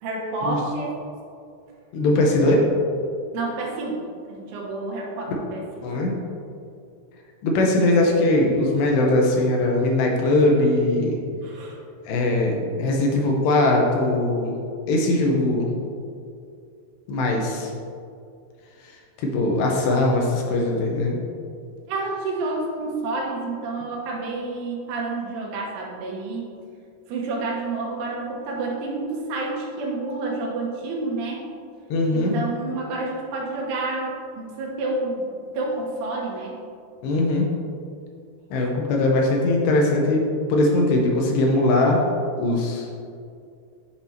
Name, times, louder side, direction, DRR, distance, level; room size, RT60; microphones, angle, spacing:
voice 1, 0.0-1.0 3.3-5.6 11.4-11.8 21.9-26.5 27.1-31.4 32.1-34.1 34.4-36.5, right 2 dB, 80° right, -2 dB, 3.6 m, -29 dB
voice 2, 1.9-2.6 5.8-6.1 7.4-11.2 12.1-14.5 14.9-15.7 17.1-17.7 19.2-21.2 31.9-32.3 37.0-37.5 38.5-40.2 40.5-42.0 42.4-42.9, left 2 dB, 75° left, -1 dB, 2.7 m, -20 dB
10.0 x 6.0 x 2.9 m, 2.4 s
omnidirectional pair, 5.5 m